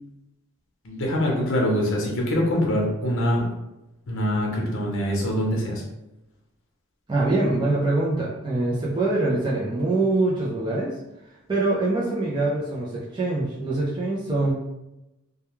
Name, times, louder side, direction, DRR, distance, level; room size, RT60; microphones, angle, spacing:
voice 1, 0.8-3.4 4.1-5.8, equal, 60° left, -1 dB, 0.7 m, -24 dB
voice 2, 7.1-10.9 11.5-14.5, right 2 dB, 20° right, -6 dB, 0.4 m, -24 dB
2.2 x 2.2 x 3.0 m, 0.93 s
head